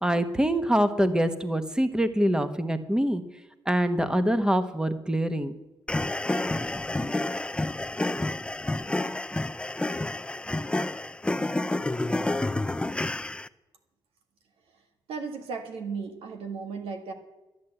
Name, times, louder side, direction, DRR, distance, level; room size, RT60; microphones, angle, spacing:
voice 1, 0.0-3.2 3.7-5.5, equal, 10° right, 10 dB, 1.2 m, -24 dB
sound 1, 5.9-13.5, left 2 dB, 10° left, 0.5 m, -29 dB
voice 2, 15.1-17.1, right 5 dB, 90° right, 5 dB, 1.9 m, -35 dB
13.0 x 9.4 x 7.9 m, 1.0 s
cardioid pair, 80°, 9 cm